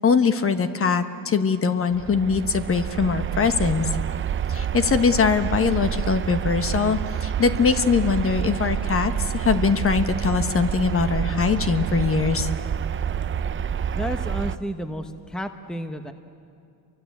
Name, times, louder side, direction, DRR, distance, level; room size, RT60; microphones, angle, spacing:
voice 1, 0.0-3.9 4.5-12.5, left 5 dB, 30° left, 9 dB, 1.3 m, -22 dB
sound 1, 1.9-14.6, right 8 dB, 30° right, 0.6 m, -28 dB
voice 2, 14.0-16.1, equal, ahead, 8 dB, 1.1 m, -31 dB
29.5 x 24.0 x 8.3 m, 2.5 s
cardioid pair, 120°, 43 cm